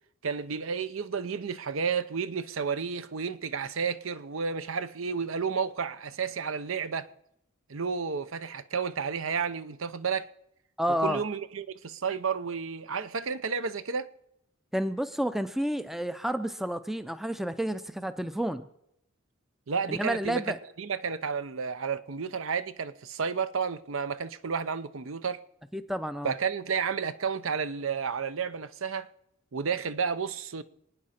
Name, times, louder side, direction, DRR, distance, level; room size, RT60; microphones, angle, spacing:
voice 1, 0.2-7.1 7.7-10.3 11.0-14.1 19.7-20.4 20.8-25.4 26.2-29.1 29.5-30.6, right 6 dB, 70° right, 0.7 m, -31 dB
voice 2, 10.8-11.2 14.7-18.7 19.9-20.6 25.7-26.3, equal, ahead, 0.4 m, -30 dB
27.0 x 9.5 x 4.3 m
head